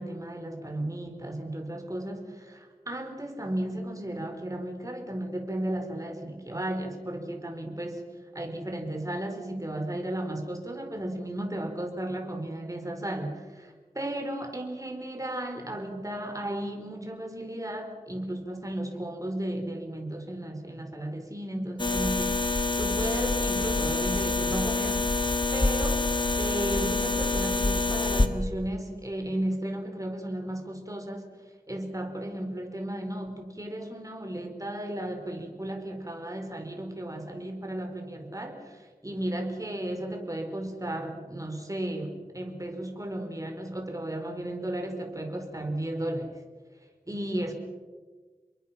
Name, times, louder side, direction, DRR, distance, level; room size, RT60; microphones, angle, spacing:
voice 1, 0.0-8.0 8.3-25.1 25.5-26.0 26.4-31.3 31.7-46.3 47.1-47.5, right 1 dB, 20° right, 4 dB, 4.4 m, -34 dB
sound 1, 21.8-28.3, left 3 dB, 30° left, 2.0 m, -26 dB
28.5 x 22.5 x 5.8 m, 1.4 s
wide cardioid pair, 75°, 15 cm